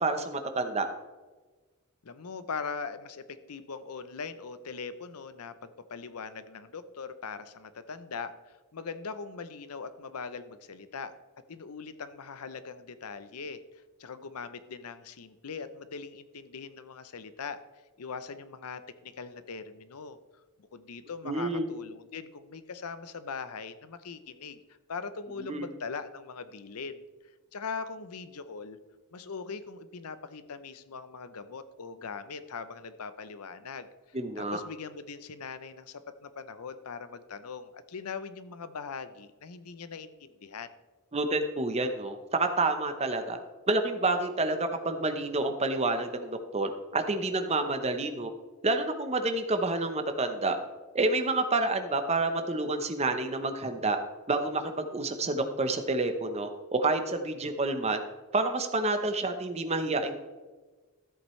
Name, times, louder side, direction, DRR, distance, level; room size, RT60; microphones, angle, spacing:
voice 1, 0.0-0.9 21.2-21.7 25.4-25.7 34.1-34.6 41.1-43.4 43.7-48.3 48.6-50.6 50.9-54.0 54.3-58.0 58.3-60.1, right 2 dB, 30° right, 7 dB, 0.9 m, -29 dB
voice 2, 2.0-3.2 3.5-8.3 8.7-11.1 11.5-17.6 18.0-20.2 20.6-24.6 24.9-27.0 27.5-28.8 29.1-40.7, left 5 dB, 85° left, 12 dB, 0.7 m, -41 dB
13.5 x 8.1 x 3.2 m, 1.3 s
head